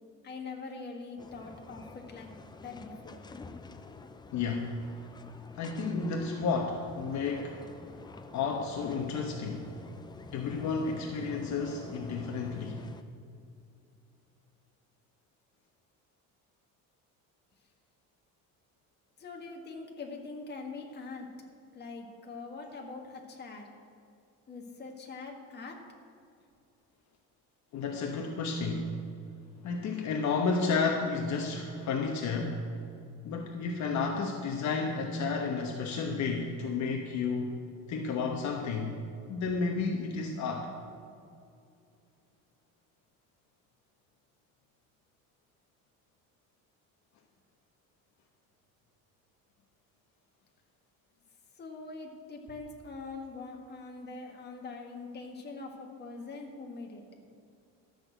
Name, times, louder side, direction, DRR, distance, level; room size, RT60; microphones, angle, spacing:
voice 1, 0.2-3.2 19.2-21.3 21.7-23.7 24.5-25.8 51.5-57.0, left 3 dB, 30° left, 1 dB, 1.7 m, -43 dB
sound 1, 1.2-13.0, left 3 dB, 15° left, 0.4 m, -48 dB
voice 2, 4.3-4.8 5.5-7.6 8.3-9.7 10.3-12.8 27.7-29.0 29.6-32.8 33.2-37.6 37.9-39.0 39.3-40.7, left 4 dB, 55° left, 2 dB, 1.1 m, -32 dB
12.5 x 6.4 x 7.9 m, 2.5 s
cardioid pair, 150°, 34 cm